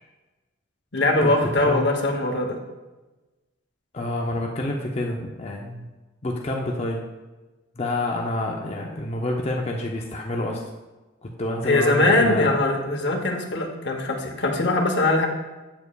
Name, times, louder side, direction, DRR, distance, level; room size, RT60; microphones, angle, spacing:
voice 1, 0.9-2.6 11.6-15.3, left 2 dB, 55° left, 3 dB, 0.9 m, -21 dB
voice 2, 3.9-5.9 6.2-7.0 7.8-10.6 11.2-12.6, left 1 dB, 30° left, 0 dB, 0.5 m, -28 dB
8.0 x 6.9 x 2.3 m, 1.2 s
head